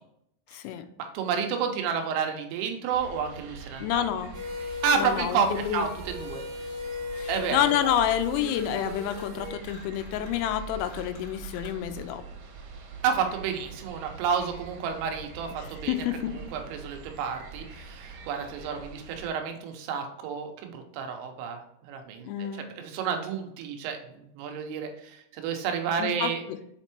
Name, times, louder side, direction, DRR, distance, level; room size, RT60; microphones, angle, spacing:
voice 1, 0.5-0.9 3.8-4.3 5.0-5.9 7.1-12.2 15.6-16.3 22.2-22.6 26.0-26.6, left 10 dB, 90° left, 9 dB, 3.3 m, -29 dB
voice 2, 1.1-4.0 4.8-6.4 7.3-7.9 13.0-15.9 16.4-24.0 24.3-26.4, right 6 dB, 90° right, 4 dB, 3.4 m, -30 dB
sound 1, 2.9-19.3, right 4 dB, 70° right, 2.4 m, -44 dB
sound 2, 4.3-9.5, left 3 dB, 55° right, 1.5 m, -37 dB
sound 3, 8.4-9.3 9.6-11.9, left 4 dB, 65° left, 2.2 m, -51 dB
7.7 x 4.4 x 2.9 m, 0.77 s
omnidirectional pair, 5.8 m